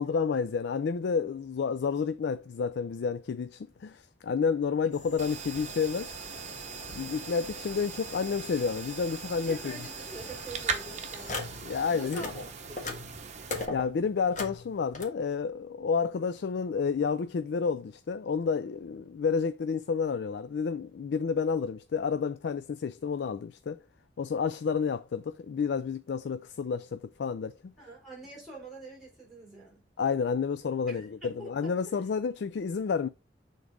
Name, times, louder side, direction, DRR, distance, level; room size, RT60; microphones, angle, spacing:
voice 1, 0.0-6.1 6.9-9.8 11.6-12.2 13.7-23.8 24.2-27.7 30.0-33.1, left 5 dB, 65° left, 0.3 m, -30 dB
sound 1, 4.9-11.8 12.0-15.0, left 3 dB, 40° left, 1.5 m, -42 dB
sound 2, 5.2-13.7, right 6 dB, 40° right, 1.0 m, -40 dB
voice 2, 9.5-11.4 11.9-12.3 12.7-13.0 16.0-16.2 27.8-29.8 30.9-31.7, right 2 dB, ahead, 4.4 m, -45 dB
7.0 x 3.9 x 4.8 m
head